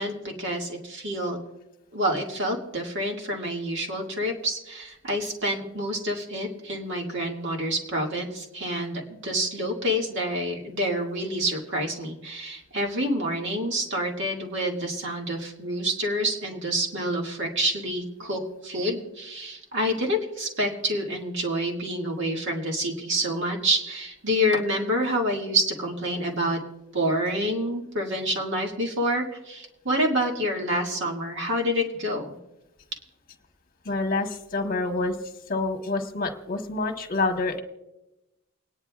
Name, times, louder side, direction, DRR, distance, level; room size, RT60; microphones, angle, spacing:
voice 1, 0.0-1.4 1.9-26.6 26.9-32.3, equal, 60° right, 0 dB, 2.1 m, -28 dB
voice 2, 33.8-35.1 35.5-37.6, left 3 dB, 45° left, 4 dB, 1.3 m, -27 dB
29.0 x 9.9 x 2.4 m, 0.95 s
head